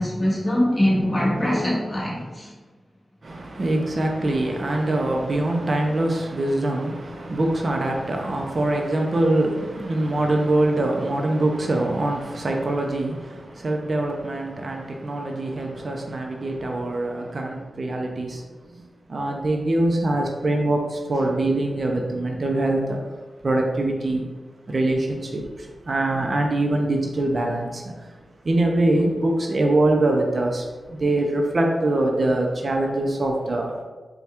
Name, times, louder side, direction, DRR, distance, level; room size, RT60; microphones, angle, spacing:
voice 1, 0.0-2.5, left 1 dB, 25° left, -5 dB, 1.4 m, -22 dB
voice 2, 3.2-18.4 19.1-23.0 23.4-24.2 24.7-28.1 28.4-33.8, right 2 dB, 50° right, 1 dB, 0.5 m, -23 dB
4.2 x 2.3 x 3.4 m, 1.3 s
cardioid pair, 65°, 0 cm